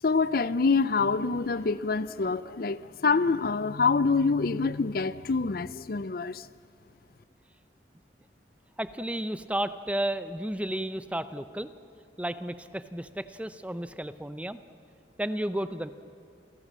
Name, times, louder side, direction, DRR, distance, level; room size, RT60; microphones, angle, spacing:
voice 1, 0.0-6.5, left 4 dB, 55° left, 0.5 m, -26 dB
voice 2, 8.8-11.7 12.2-14.6 15.2-15.9, right 1 dB, 5° right, 0.7 m, -32 dB
28.0 x 17.5 x 7.5 m
head